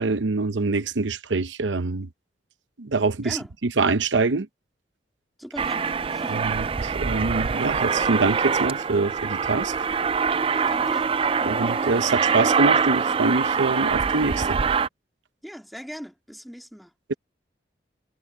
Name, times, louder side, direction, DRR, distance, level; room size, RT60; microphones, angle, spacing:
voice 1, 0.0-2.1 2.8-3.4 3.8-4.5 6.3-9.7 11.5-14.6, right 3 dB, 90° right, 0.8 m, -24 dB
voice 2, 5.4-6.5 10.5-11.1 11.4-11.6 15.4-17.2, equal, ahead, 2.8 m, -40 dB
Aircraft, 5.6-14.9, right 6 dB, 30° right, 0.4 m, -24 dB
head